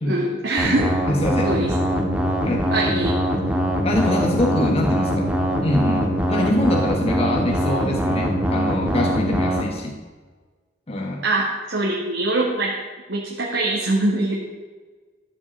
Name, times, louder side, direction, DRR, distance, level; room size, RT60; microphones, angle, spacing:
voice 1, 0.0-0.9 1.4-1.7 2.7-3.1 11.2-12.7 13.1-14.4, right 2 dB, 90° right, -4 dB, 2.4 m, -23 dB
sound 1, 0.6-9.6, equal, 5° right, 1.9 m, -22 dB
voice 2, 1.1-1.5 2.4-2.7 3.8-5.3 5.6-10.0 10.9-11.2, left 1 dB, 35° left, 1 dB, 1.3 m, -24 dB
14.0 x 7.9 x 7.8 m, 1.3 s
head